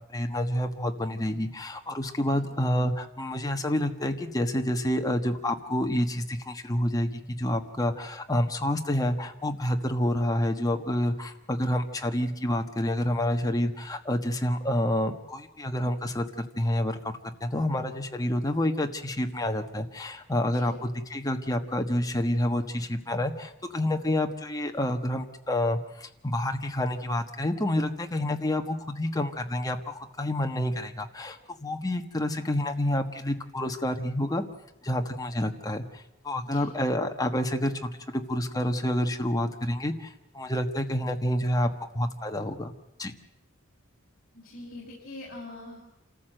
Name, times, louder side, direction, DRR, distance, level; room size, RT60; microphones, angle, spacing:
voice 1, 0.1-34.4 34.8-41.7 41.9-42.7 43.0-43.1, left 1 dB, 20° left, 4 dB, 1.4 m, -28 dB
voice 2, 44.3-45.9, left 2 dB, 40° left, -6 dB, 5.5 m, -43 dB
27.5 x 14.0 x 7.8 m, 0.87 s
head